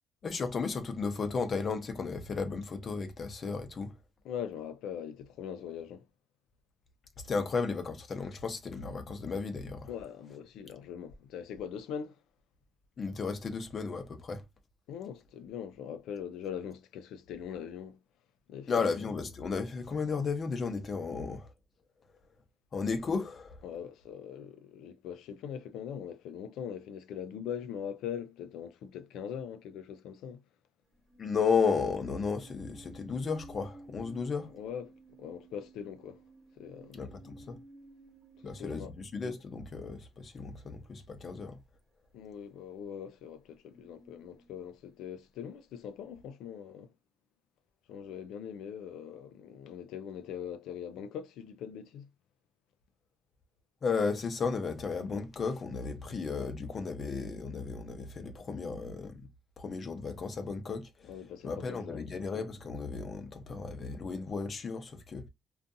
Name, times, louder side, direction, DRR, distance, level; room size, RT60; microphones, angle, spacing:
voice 1, 0.2-3.9 7.2-9.9 13.0-14.4 18.7-21.5 22.7-23.6 31.2-34.5 36.9-37.6 38.4-41.6 53.8-59.2 59.6-61.1 61.4-65.3, left 5 dB, 45° left, 0.6 m, -34 dB
voice 2, 4.2-6.0 9.9-12.2 14.9-18.0 18.5-18.9 23.6-30.4 34.5-36.2 36.6-37.0 38.4-38.9 42.1-46.9 47.9-52.1 61.0-62.2, left 8 dB, 90° left, 0.3 m, -42 dB
sound 1, 30.9-39.6 42.9-43.0 43.5-45.1 45.4-46.3, right 2 dB, 20° right, 1.0 m, -55 dB
2.5 x 2.3 x 2.5 m
cardioid pair, 90°, 0 cm